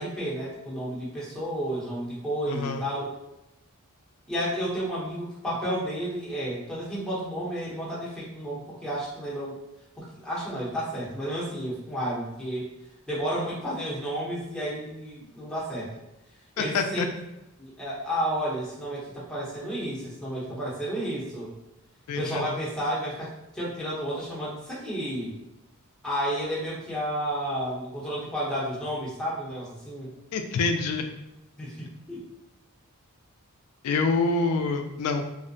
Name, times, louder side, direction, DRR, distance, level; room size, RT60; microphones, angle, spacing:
voice 1, 0.0-3.1 4.3-9.6 10.0-12.7 13.1-15.9 16.6-17.1 17.6-21.5 22.1-25.4 26.0-30.1 31.6-32.2, equal, 5° left, -7 dB, 0.7 m, -31 dB
voice 2, 2.5-2.8 16.6-17.1 22.1-22.5 30.3-31.0 33.8-35.3, left 4 dB, 85° left, 5 dB, 0.3 m, -26 dB
2.6 x 2.0 x 2.6 m, 0.91 s
head